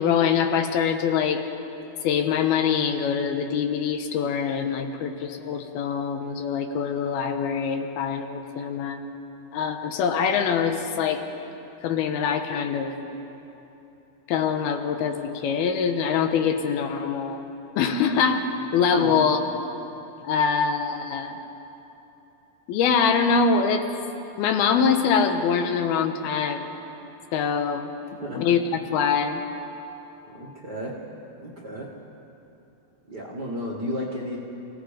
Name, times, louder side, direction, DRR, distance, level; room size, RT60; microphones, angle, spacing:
voice 1, 0.0-1.4 2.0-9.0 9.5-11.2 11.8-13.0 14.3-17.4 17.8-18.5 18.7-19.4 20.2-21.4 22.7-23.8 24.4-26.8 27.3-27.9 28.3-28.6 28.9-29.4, left 6 dB, 80° left, 6 dB, 3.0 m, -24 dB
voice 2, 18.9-19.2 20.2-20.3 28.2-28.5 30.2-30.9 31.4-31.9 33.1-34.4, equal, 45° right, -4 dB, 1.4 m, -33 dB
29.5 x 17.5 x 5.1 m, 3.0 s
omnidirectional pair, 4.4 m